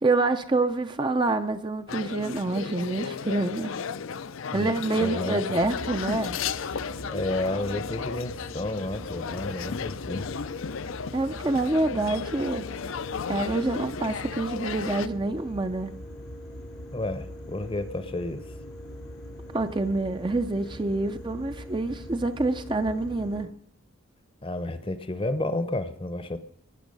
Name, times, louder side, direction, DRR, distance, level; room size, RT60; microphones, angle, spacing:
voice 1, 0.0-3.7 4.5-6.4 11.1-12.7 13.3-15.9 19.5-23.5, right 2 dB, 20° right, 0.5 m, -27 dB
sound 1, 1.9-15.1, left 6 dB, 70° left, 0.5 m, -34 dB
voice 2, 5.0-5.4 7.1-10.3 16.9-18.4 24.4-26.4, left 2 dB, 25° left, 0.7 m, -31 dB
sound 2, 5.6-23.4, equal, 90° left, 3.6 m, -42 dB
19.5 x 7.1 x 5.3 m
head